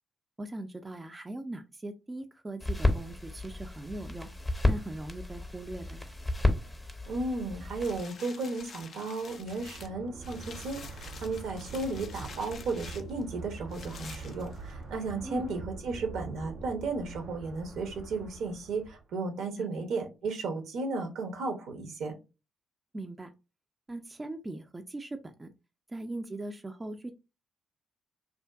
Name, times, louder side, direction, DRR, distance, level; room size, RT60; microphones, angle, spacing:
voice 1, 0.4-4.3 4.6-6.1 15.2-15.5 19.6-19.7 22.9-23.3 23.9-25.5 25.9-27.1, right 2 dB, 25° right, 6 dB, 0.4 m, -40 dB
sound 1, 2.6-8.0, left 2 dB, 20° left, 0.7 m, -31 dB
voice 2, 7.1-22.1, right 3 dB, 70° right, 4 dB, 0.7 m, -34 dB
sound 2, 7.8-15.0 15.5-15.6, left 5 dB, 55° left, 0.4 m, -48 dB
sound 3, 9.3-19.1, right 3 dB, 85° right, 1.2 m, -44 dB
2.6 x 2.4 x 2.3 m, 0.28 s
hypercardioid pair, 45°, 0 cm